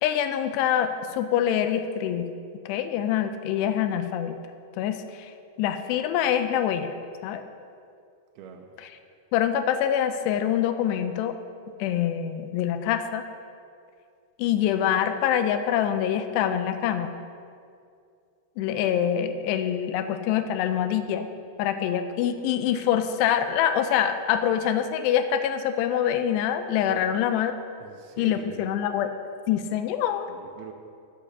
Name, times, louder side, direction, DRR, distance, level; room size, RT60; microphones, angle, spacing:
voice 1, 0.0-2.3 2.7-4.4 4.8-5.3 5.6-6.9 7.2-7.4 9.3-11.4 11.8-13.2 14.4-17.2 18.6-21.3 21.6-27.5 28.2-29.1 29.5-30.3, left 9 dB, 85° left, 9 dB, 2.7 m, -25 dB
voice 2, 8.4-8.7 26.9-27.1 27.8-28.8 30.3-30.7, right 8 dB, 80° right, 4 dB, 2.4 m, -43 dB
8.4 x 6.9 x 6.6 m, 2.4 s
omnidirectional pair, 4.8 m